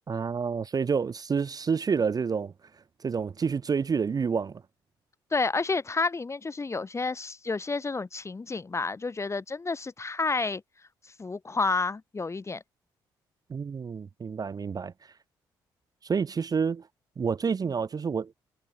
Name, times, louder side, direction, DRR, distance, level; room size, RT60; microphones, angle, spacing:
voice 1, 0.1-2.5 3.0-4.6 13.5-14.9 16.0-16.9 17.2-18.3, right 6 dB, 35° right, 0.5 m, -28 dB
voice 2, 5.3-10.6 11.2-12.6, left 3 dB, 25° left, 0.7 m, -30 dB
hypercardioid pair, 45°, 12 cm